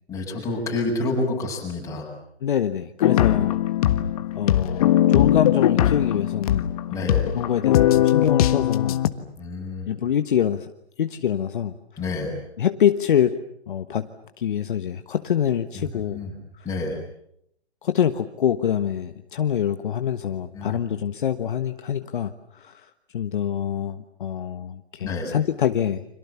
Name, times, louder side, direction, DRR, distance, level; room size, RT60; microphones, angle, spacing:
voice 1, 0.1-2.1 6.9-7.2 9.4-9.9 12.0-12.4 15.8-16.3 16.6-17.0 20.5-20.8 25.0-25.3, left 2 dB, 10° left, -1 dB, 7.4 m, -28 dB
voice 2, 2.4-3.6 4.3-9.0 9.9-10.7 11.0-11.7 12.6-13.4 13.7-14.1 14.4-16.2 17.8-22.8 23.1-26.0, left 9 dB, 50° left, 8 dB, 1.4 m, -25 dB
sound 1, 3.0-9.1, left 12 dB, 35° left, 1.5 m, -20 dB
30.0 x 27.0 x 7.1 m, 0.74 s
hypercardioid pair, 145°, 33 cm